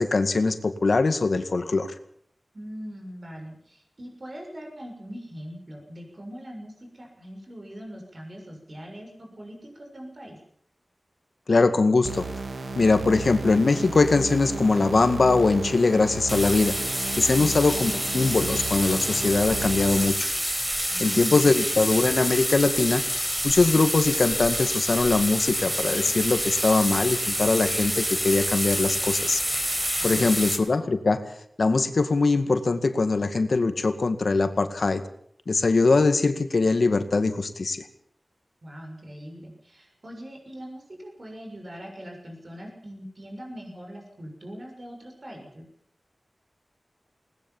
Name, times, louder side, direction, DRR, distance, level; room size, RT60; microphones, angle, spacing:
voice 1, 0.0-1.9 11.5-12.3 12.8-16.8 17.2-20.3 21.0-23.0 23.4-29.4 30.0-31.2 31.6-35.0 35.5-37.8, left 3 dB, 65° left, 9 dB, 2.0 m, -22 dB
voice 2, 2.5-10.4 17.3-17.5 20.9-21.6 30.0-30.3 38.6-45.6, equal, 50° right, 2 dB, 6.6 m, -41 dB
sound 1, 12.0-20.0, right 3 dB, 85° right, 2.8 m, -34 dB
sound 2, 16.3-30.6, equal, 15° right, 4.5 m, -28 dB
21.0 x 19.5 x 7.3 m, 0.62 s
wide cardioid pair, 75°, 0 cm